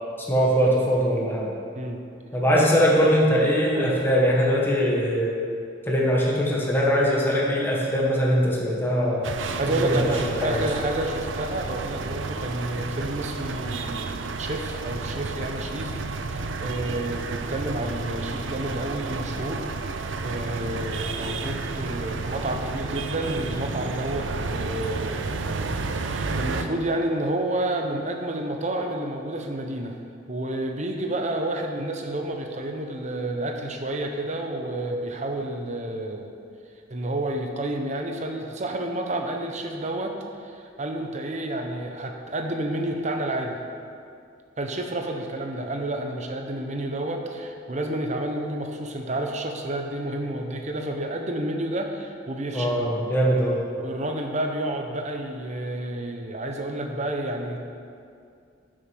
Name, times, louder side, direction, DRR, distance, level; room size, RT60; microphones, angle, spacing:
voice 1, 0.3-1.5 2.3-5.4 5.9-9.3 9.7-10.7 52.5-53.6, equal, 10° left, -4 dB, 1.5 m, -22 dB
sound 1, 9.2-26.6, right 3 dB, 85° right, 0.6 m, -31 dB
voice 2, 9.6-16.0 16.3-25.3 25.7-30.0 30.3-36.3 36.9-40.2 40.4-43.6 44.6-52.7 53.8-57.6, right 1 dB, 40° right, 3 dB, 1.0 m, -30 dB
10.0 x 6.5 x 6.4 m, 2.4 s
head